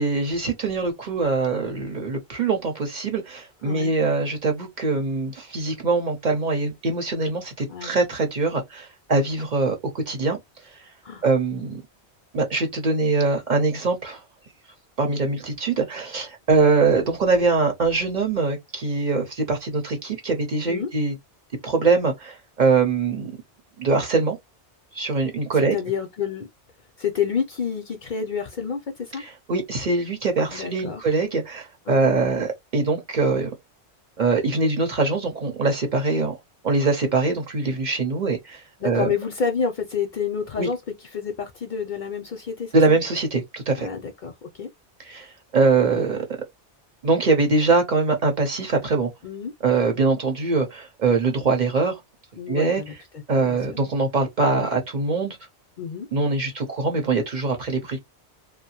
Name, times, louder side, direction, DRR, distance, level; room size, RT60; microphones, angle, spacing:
voice 1, 0.0-10.4 11.2-11.8 12.3-14.2 15.0-21.1 21.6-23.3 23.8-24.4 24.9-25.8 29.2-33.5 34.2-36.3 36.6-39.1 40.6-40.7 42.7-43.9 45.1-45.3 45.5-46.3 47.0-49.1 49.6-52.0 52.5-52.8 53.3-55.4 56.1-58.0, right 4 dB, 50° right, 0.8 m, -23 dB
voice 2, 3.6-4.0 7.7-8.0 11.0-11.2 20.7-20.9 25.5-26.5 27.0-29.2 30.5-31.0 31.9-32.1 38.8-40.8 41.1-43.0 43.8-44.7 49.2-49.5 52.4-52.9 53.3-53.8 55.8-56.1, left 6 dB, 55° left, 0.6 m, -29 dB
2.7 x 2.1 x 2.8 m
omnidirectional pair, 1.1 m